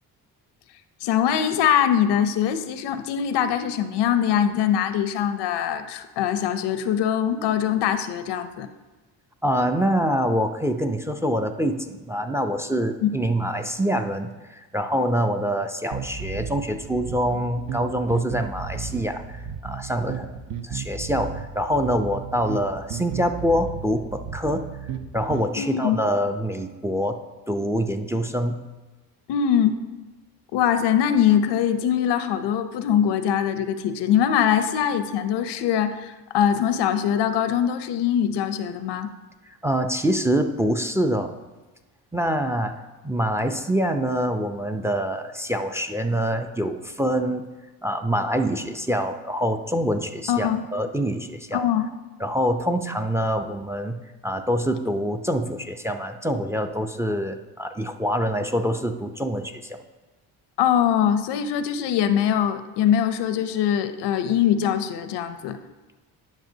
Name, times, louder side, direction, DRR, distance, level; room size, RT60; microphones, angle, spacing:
voice 1, 1.0-8.7 13.0-13.1 25.6-26.0 29.3-29.8 30.5-39.1 50.3-50.7 51.5-51.9 60.6-65.6, left 9 dB, 85° left, 10 dB, 0.6 m, -22 dB
voice 2, 9.4-24.6 25.1-27.2 27.5-28.7 39.6-41.3 42.1-47.5 47.8-51.6 52.2-59.8, equal, 5° right, 7 dB, 0.4 m, -25 dB
sound 1, 15.9-25.5, right 6 dB, 55° right, 0.7 m, -34 dB
10.5 x 5.9 x 2.7 m, 1.2 s
cardioid pair, 85°, 40 cm